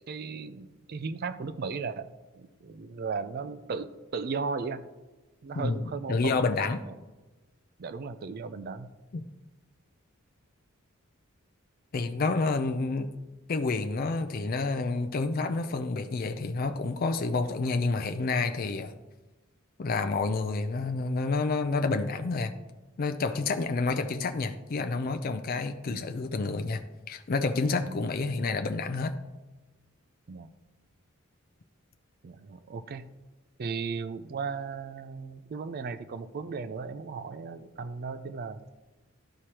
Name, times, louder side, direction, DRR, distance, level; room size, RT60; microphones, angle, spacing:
voice 1, 0.1-2.1 2.3-4.8 5.4-6.5 6.8-6.9 7.8-8.9 25.9-26.0 27.8-28.0 30.3-30.5 32.2-33.1 33.6-38.7, right 5 dB, 45° right, 0.4 m, -36 dB
voice 2, 6.1-6.8 9.1-9.2 11.9-13.1 13.5-18.9 19.8-22.5 23.0-26.8 27.1-29.1, left 3 dB, 45° left, 0.4 m, -29 dB
12.5 x 4.8 x 2.9 m
head